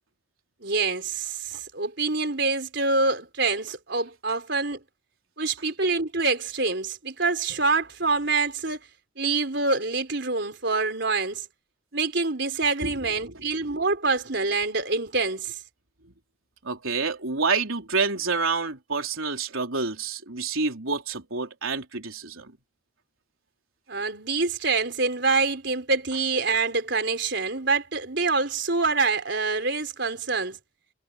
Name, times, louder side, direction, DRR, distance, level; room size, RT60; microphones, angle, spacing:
voice 1, 0.6-4.8 5.4-8.8 9.2-11.4 11.9-15.6 23.9-30.6, right 3 dB, 55° right, 4.8 m, -26 dB
voice 2, 16.6-22.5, right 4 dB, 80° right, 3.8 m, -28 dB
head